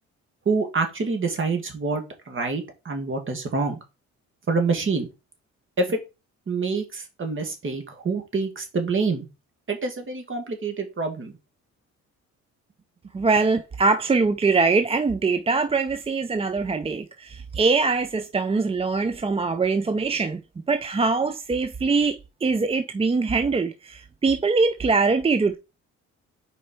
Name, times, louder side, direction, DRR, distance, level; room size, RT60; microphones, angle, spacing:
voice 1, 0.5-3.8 4.5-5.1 5.8-6.0 6.5-9.3 9.7-11.4, right 4 dB, 40° right, 2.0 m, -26 dB
voice 2, 13.1-20.4 20.7-25.6, right 4 dB, 20° right, 0.5 m, -23 dB
5.0 x 4.5 x 4.4 m
cardioid pair, 90°, 30 cm